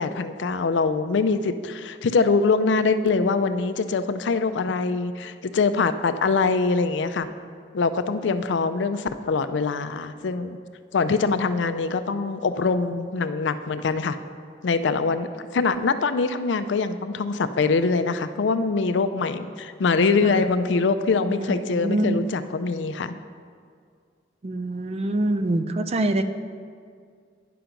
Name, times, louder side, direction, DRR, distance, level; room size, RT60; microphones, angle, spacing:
voice 1, 0.0-7.3 7.7-10.6 10.9-14.2 14.6-23.1, left 4 dB, 85° left, 11 dB, 0.4 m, -23 dB
voice 2, 21.3-22.2 24.4-26.2, right 1 dB, 35° right, 9 dB, 0.4 m, -25 dB
10.0 x 5.9 x 5.2 m, 2.1 s
head